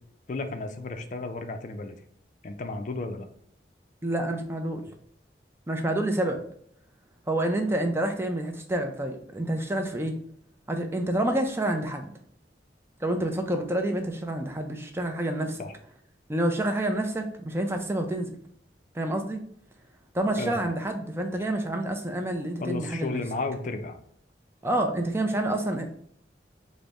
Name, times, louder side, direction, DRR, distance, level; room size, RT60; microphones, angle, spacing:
voice 1, 0.3-2.0 2.4-3.3 15.6-15.7 20.4-20.8 22.6-24.0, left 3 dB, 45° left, 7 dB, 0.4 m, -33 dB
voice 2, 4.0-4.8 5.7-6.4 7.3-10.2 10.7-12.1 13.0-15.6 16.3-18.3 18.9-19.4 20.1-23.2 24.6-25.9, right 1 dB, 15° right, 4 dB, 0.4 m, -28 dB
3.9 x 2.0 x 3.4 m, 0.67 s
head